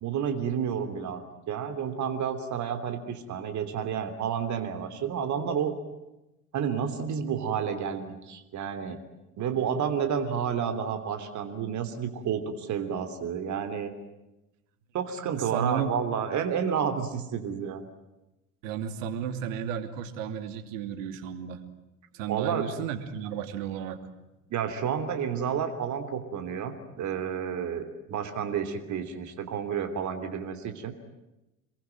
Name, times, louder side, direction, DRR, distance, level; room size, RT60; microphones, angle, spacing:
voice 1, 0.0-5.8 6.5-9.0 9.4-13.9 14.9-17.8 22.3-22.7 24.5-30.9, right 7 dB, 40° right, 7 dB, 3.1 m, -30 dB
voice 2, 15.4-15.9 18.6-21.6 22.1-24.0 28.1-28.3, right 8 dB, 60° right, 9 dB, 2.9 m, -33 dB
27.5 x 22.5 x 9.1 m, 0.97 s
figure-of-eight pair, 65°, 43 cm